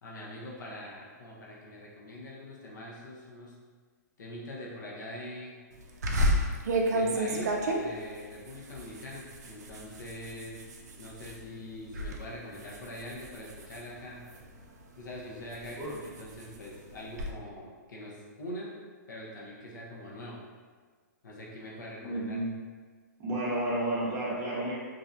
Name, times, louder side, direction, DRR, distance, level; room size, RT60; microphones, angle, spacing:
voice 1, 0.0-3.5 4.2-5.6 6.9-10.6 11.0-14.2 15.0-18.8 19.1-20.4 21.2-22.4, left 1 dB, 80° left, -4 dB, 0.7 m, -43 dB
sound 1, 6.0-11.4 11.8-12.2 12.5-14.6 15.1-17.3, right 1 dB, 60° right, 0.4 m, -31 dB
voice 2, 22.0-22.5 23.2-24.7, right 1 dB, 20° right, -7 dB, 0.6 m, -31 dB
2.5 x 2.1 x 2.6 m, 1.5 s
hypercardioid pair, 155°, 10 cm